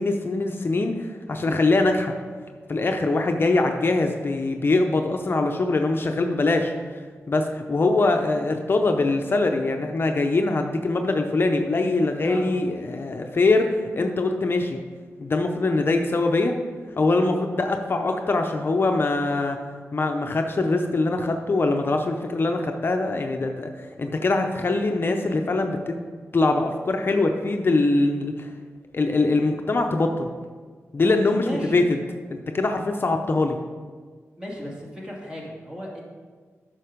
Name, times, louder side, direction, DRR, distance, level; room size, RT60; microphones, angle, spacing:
voice 1, 0.0-2.1 2.7-6.7 7.3-14.8 15.2-16.5 17.0-19.6 19.9-23.7 24.0-26.0 26.3-28.5 28.9-30.3 30.9-31.8 32.3-33.6, left 2 dB, 45° left, 4 dB, 0.6 m, -23 dB
voice 2, 31.4-31.8 34.4-36.0, equal, 15° right, -3 dB, 2.4 m, -35 dB
9.0 x 5.9 x 5.1 m, 1.5 s
wide cardioid pair, 80°, 5 cm